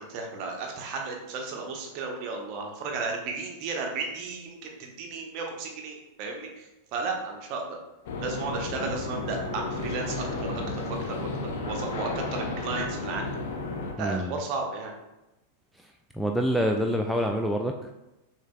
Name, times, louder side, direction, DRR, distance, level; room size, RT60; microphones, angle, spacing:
voice 1, 0.0-7.8 8.2-13.3 14.0-14.9, right 4 dB, 45° right, 2 dB, 0.9 m, -34 dB
sound 1, 8.1-13.9, left 3 dB, 55° left, 0.6 m, -33 dB
voice 2, 14.0-14.4 15.8-17.9, equal, ahead, 2 dB, 0.3 m, -27 dB
6.2 x 3.3 x 2.3 m, 0.96 s
figure-of-eight pair, 90°, 0 cm